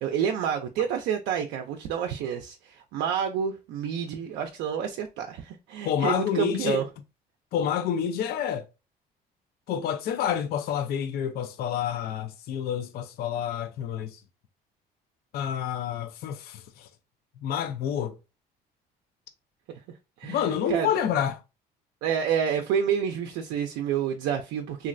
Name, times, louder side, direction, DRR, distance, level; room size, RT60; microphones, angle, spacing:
voice 1, 0.0-6.8 20.2-20.9 22.0-24.9, right 8 dB, 85° right, 0.5 m, -29 dB
voice 2, 5.8-6.8 7.5-8.7 9.7-14.2 15.3-16.9 17.4-18.2 20.2-21.4, left 9 dB, 65° left, 0.5 m, -28 dB
3.0 x 2.5 x 2.5 m
cardioid pair, 110°, 17 cm